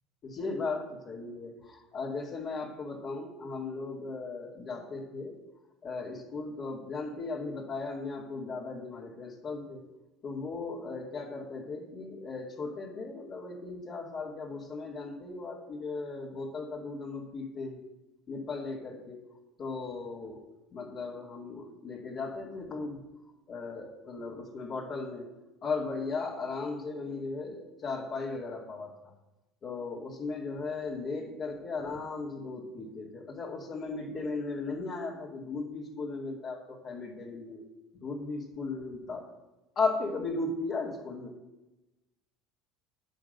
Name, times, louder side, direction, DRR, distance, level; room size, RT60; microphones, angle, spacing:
voice 1, 0.2-5.4 5.8-9.8 10.2-17.9 18.3-19.2 19.6-20.4 20.7-23.0 23.5-25.3 25.6-29.1 29.6-37.7 37.9-39.3 39.8-41.3, left 3 dB, 45° left, -6 dB, 2.4 m, -36 dB
9.1 x 5.2 x 7.9 m, 1.0 s
hypercardioid pair, 80°, 0 cm